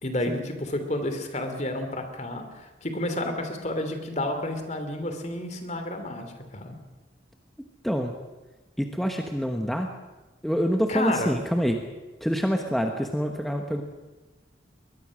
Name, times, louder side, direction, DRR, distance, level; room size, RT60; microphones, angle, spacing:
voice 1, 0.0-6.8 10.9-11.3, left 1 dB, 35° left, 7 dB, 2.8 m, -30 dB
voice 2, 8.8-9.9 10.4-11.8 12.2-13.8, equal, ahead, 3 dB, 1.1 m, -26 dB
22.5 x 20.5 x 6.4 m, 1.2 s
head